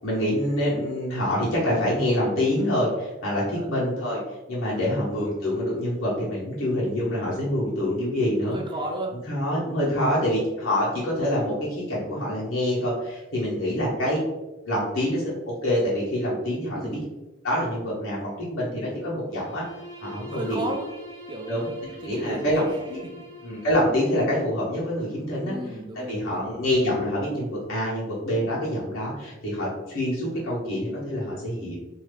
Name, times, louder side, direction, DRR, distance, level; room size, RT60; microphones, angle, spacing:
voice 1, 0.0-4.2 4.5-8.6 9.3-14.2 14.7-17.0 17.4-19.6 20.0-20.6 21.5-22.6 22.9-23.0 23.4-25.6 26.1-31.8, left 1 dB, 85° left, -7 dB, 1.1 m, -26 dB
voice 2, 3.4-3.7 4.6-5.0 8.4-9.1 9.8-10.4 16.7-17.0 20.1-20.9 21.3-23.1 25.4-26.4, right 1 dB, 25° right, 2 dB, 0.4 m, -35 dB
Bowed string instrument, 19.3-24.2, equal, 15° left, 0.6 m, -44 dB
2.7 x 2.4 x 3.3 m, 1.0 s
head